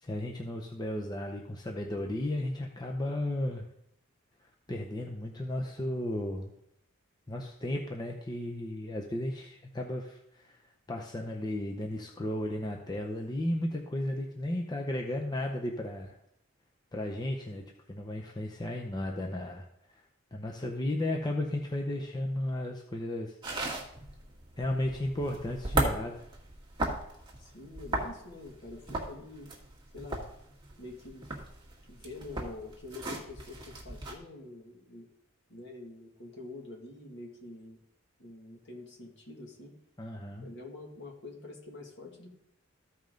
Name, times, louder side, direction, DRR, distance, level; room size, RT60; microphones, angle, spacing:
voice 1, 0.0-3.6 4.7-6.5 7.3-10.6 10.9-16.1 16.9-19.7 19.9-20.0 20.3-23.4 24.6-26.2 40.0-40.5, left 1 dB, 20° left, 1 dB, 0.7 m, -34 dB
sound 1, 23.4-34.2, right 1 dB, 25° right, 1.7 m, -36 dB
voice 2, 27.4-29.5 29.9-30.2 30.8-31.3 31.9-35.1 35.5-37.8 38.2-39.8 40.4-42.3, left 2 dB, 60° left, 0 dB, 2.2 m, -46 dB
14.0 x 5.3 x 3.9 m, 0.77 s
head